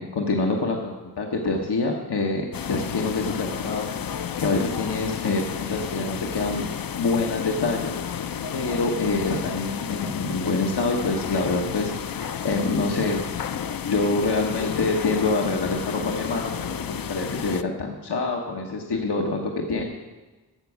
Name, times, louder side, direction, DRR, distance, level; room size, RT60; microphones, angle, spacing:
voice 1, 0.0-6.7 7.0-13.2 13.9-19.8, left 3 dB, 85° left, 0 dB, 1.2 m, -26 dB
sound 1, 2.5-17.6, left 8 dB, 60° left, 0.5 m, -32 dB
12.0 x 7.1 x 8.0 m, 1.2 s
wide cardioid pair, 65°, 39 cm